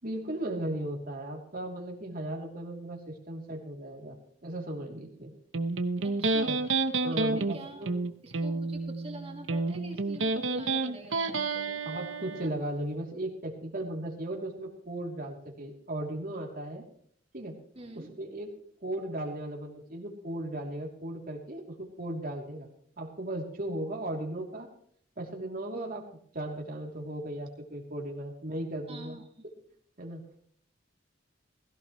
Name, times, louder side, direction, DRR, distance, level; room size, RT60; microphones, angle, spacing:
voice 1, 0.0-5.3 6.4-6.6 7.0-7.9 11.8-16.8 17.3-17.5 17.9-18.5 18.8-22.7 23.0-24.7 25.2-26.0 26.3-29.2 30.0-30.2, right 1 dB, 50° right, 1 dB, 3.1 m, -36 dB
Electric guitar, 5.5-12.5, right 3 dB, 90° right, 0.9 m, -30 dB
voice 2, 6.0-6.6 7.0-7.9 8.2-11.8 17.7-18.1 25.7-25.9 28.9-29.2, right 1 dB, 30° right, 1 dB, 2.3 m, -45 dB
17.0 x 16.0 x 3.2 m, 0.63 s
head